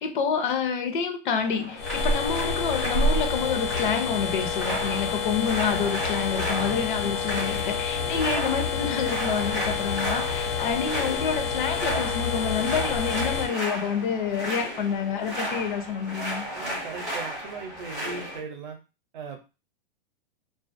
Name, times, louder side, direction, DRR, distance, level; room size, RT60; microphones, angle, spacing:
voice 1, 0.0-16.5, left 6 dB, 55° left, 0.6 m, -28 dB
sound 1, 1.3-18.4, equal, ahead, 0.4 m, -34 dB
sound 2, 1.8-13.5, left 4 dB, 85° left, 0.9 m, -28 dB
voice 2, 6.5-7.1 7.9-8.4 16.5-18.8 19.1-19.4, right 5 dB, 50° right, 0.7 m, -39 dB
2.4 x 2.3 x 2.5 m
supercardioid pair, 170°, 29 cm